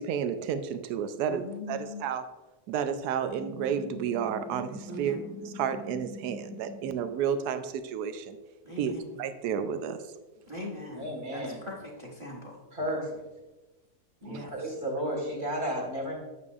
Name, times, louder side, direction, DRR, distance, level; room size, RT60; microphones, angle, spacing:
voice 1, 0.0-2.2 2.7-5.2 5.6-8.4 8.8-8.9 9.2-10.0, right 8 dB, 85° right, 10 dB, 1.1 m, -31 dB
voice 2, 1.3-2.0 4.9-5.3 8.6-9.1 10.5-12.6 14.2-14.7, left 1 dB, 20° right, -2 dB, 1.1 m, -41 dB
sound 1, 3.3-7.2, left 1 dB, 25° left, 0.5 m, -44 dB
voice 3, 11.0-11.6 12.7-13.1 14.2-16.2, equal, 45° right, -2 dB, 1.8 m, -33 dB
8.5 x 6.7 x 2.4 m, 1.1 s
omnidirectional pair, 1.6 m